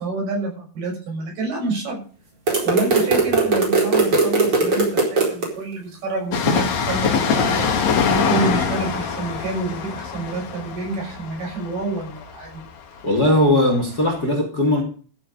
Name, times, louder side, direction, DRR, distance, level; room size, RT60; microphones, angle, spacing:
voice 1, 0.0-2.0 2.6-7.7 8.1-12.6, right 3 dB, 65° right, 8.4 m, -28 dB
sound 1, 2.5-5.5, right 3 dB, 35° right, 5.2 m, -19 dB
Train, 6.3-13.8 14.0-14.1, left 6 dB, 50° left, 2.6 m, -23 dB
voice 2, 13.0-14.8, left 1 dB, 30° left, 2.5 m, -18 dB
14.5 x 7.5 x 6.8 m
omnidirectional pair, 4.7 m